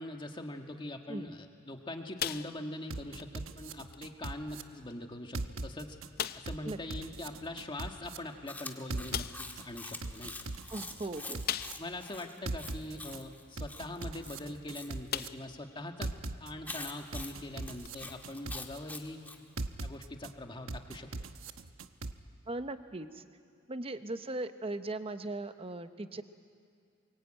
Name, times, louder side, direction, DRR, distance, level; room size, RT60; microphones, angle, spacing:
voice 1, 0.0-6.0 6.3-10.5 11.2-11.4 11.8-16.1 16.4-19.2 19.8-21.1, left 1 dB, 25° left, 4 dB, 1.7 m, -42 dB
sound 1, 2.2-2.9 3.2-3.4 3.9-4.0 4.9-5.0 5.4-5.5 6.2-6.6 8.3-8.4 9.1-9.5 11.5-12.0 12.5-12.6 14.5-14.6 15.1-15.6 16.1-16.2 17.8-17.9, left 10 dB, 50° left, 0.6 m, -37 dB
sound 2, 2.9-4.6 5.3-6.1 6.5-8.2 8.9-9.6 10.0-11.7 12.5-13.2 13.6-15.3 16.0-16.7 17.1-18.8 19.6-20.3 20.7-22.1, right 2 dB, 85° right, 1.0 m, -39 dB
Chewing mastication, 8.5-14.9 16.6-19.4, left 2 dB, 10° left, 1.5 m, -45 dB
voice 2, 10.7-11.4 22.5-23.3 23.7-26.2, right 2 dB, 30° right, 10 dB, 0.9 m, -38 dB
23.0 x 22.5 x 8.9 m, 2.3 s
head